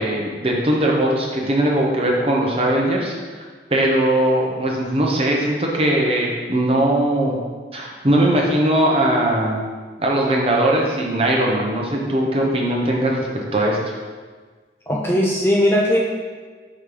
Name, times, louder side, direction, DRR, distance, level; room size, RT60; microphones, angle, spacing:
voice 1, 0.0-3.2 3.7-7.3 7.7-9.6 10.0-13.8, right 1 dB, 35° right, -2 dB, 0.9 m, -19 dB
voice 2, 14.9-16.0, left 1 dB, 15° left, -2 dB, 0.4 m, -18 dB
5.0 x 4.3 x 4.9 m, 1.5 s
head